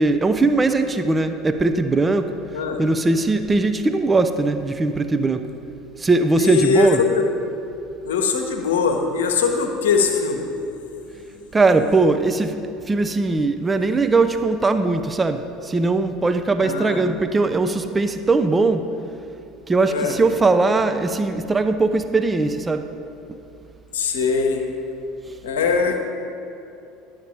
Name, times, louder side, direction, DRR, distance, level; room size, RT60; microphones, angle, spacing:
voice 1, 0.0-2.3 2.8-5.5 6.0-7.0 11.5-12.6 12.9-18.9 19.7-22.9 23.3-23.4, right 3 dB, 20° right, 9 dB, 0.5 m, -20 dB
voice 2, 6.3-7.2 8.0-10.4 16.6-17.0 19.9-20.1 23.9-24.6 25.4-26.0, left 5 dB, 65° left, 4 dB, 1.0 m, -21 dB
11.5 x 7.9 x 4.3 m, 2.8 s
figure-of-eight pair, 65°, 0 cm